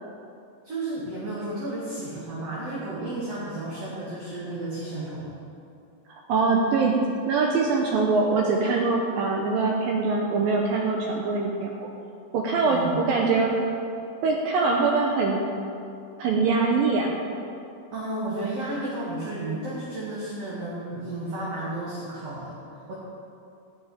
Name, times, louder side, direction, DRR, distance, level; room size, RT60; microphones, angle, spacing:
voice 1, 0.6-5.3 12.6-13.0 17.9-22.9, right 2 dB, 45° right, -7 dB, 2.6 m, -33 dB
voice 2, 6.1-7.0 7.3-11.9 12.3-13.6 14.2-15.4 16.2-17.2, right 4 dB, 70° right, 0 dB, 2.4 m, -23 dB
12.5 x 6.1 x 9.2 m, 2.6 s
omnidirectional pair, 4.6 m